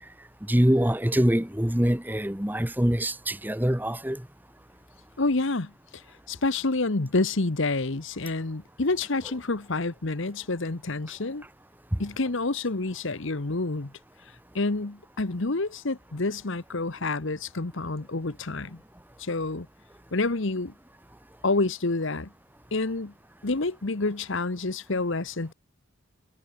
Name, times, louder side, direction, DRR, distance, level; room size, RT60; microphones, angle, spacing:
voice 1, 0.5-4.2, equal, 10° right, 1.2 m, -24 dB
voice 2, 5.2-6.0 6.3-11.4 12.0-13.9 14.5-18.8 19.2-19.7 20.1-20.7 21.4-22.3 22.7-23.1 23.4-25.5, left 3 dB, 55° left, 1.1 m, -28 dB
head